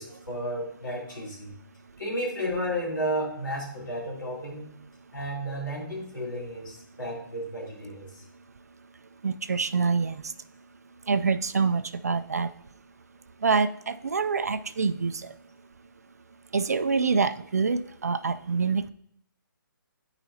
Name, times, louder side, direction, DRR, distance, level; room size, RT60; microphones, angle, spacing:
voice 1, 0.0-1.5 2.0-4.8 5.1-8.2, equal, 65° left, -3 dB, 3.1 m, -33 dB
voice 2, 9.2-10.3 11.1-12.5 13.4-15.3 16.5-18.9, right 5 dB, 50° right, 12 dB, 0.4 m, -26 dB
13.0 x 4.9 x 2.7 m, 0.70 s
hypercardioid pair, 175°, 11 cm